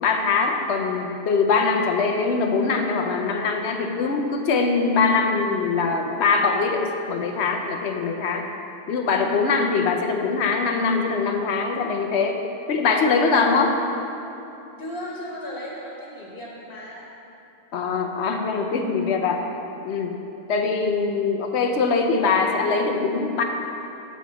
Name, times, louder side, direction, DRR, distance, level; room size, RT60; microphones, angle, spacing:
voice 1, 0.0-8.5 8.9-12.4 12.7-13.7 17.7-19.4 19.8-20.2 20.5-23.4, left 4 dB, 90° left, 3 dB, 0.9 m, -22 dB
voice 2, 14.8-17.0, left 1 dB, 65° left, -4 dB, 1.4 m, -35 dB
7.4 x 7.3 x 4.0 m, 2.9 s
omnidirectional pair, 1.1 m